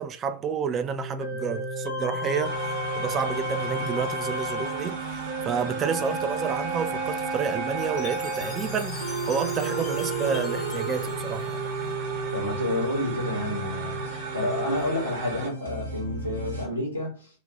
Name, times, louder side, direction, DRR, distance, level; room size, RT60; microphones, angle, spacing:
voice 1, 0.0-2.6 3.0-11.6, right 6 dB, 25° right, 0.3 m, -30 dB
sound 1, 0.9-16.7, right 2 dB, 75° right, 0.9 m, -32 dB
sound 2, 2.4-15.5, right 3 dB, 50° right, 0.7 m, -38 dB
Chime, 8.0-12.2, left 5 dB, 30° left, 0.9 m, -44 dB
voice 2, 12.3-17.3, left 1 dB, 80° left, 1.1 m, -29 dB
2.8 x 2.1 x 2.9 m
figure-of-eight pair, 90°, 0 cm